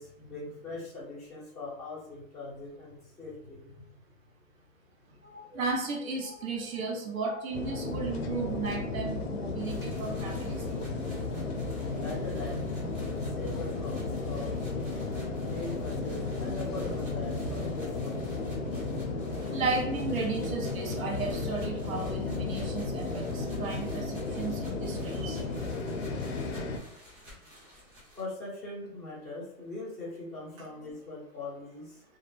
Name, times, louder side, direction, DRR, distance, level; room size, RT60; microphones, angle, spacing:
voice 1, 0.0-3.8 11.8-14.7 15.4-18.2 28.1-32.0, left 2 dB, ahead, -12 dB, 0.6 m, -41 dB
voice 2, 5.2-10.6 19.5-25.4, right 4 dB, 70° right, 1 dB, 0.8 m, -34 dB
sound 1, 7.5-26.8, left 3 dB, 50° left, 0.6 m, -34 dB
sound 2, 9.6-28.2, equal, 25° right, 0.9 m, -53 dB
2.3 x 2.1 x 3.1 m, 0.72 s
hypercardioid pair, 150°, 43 cm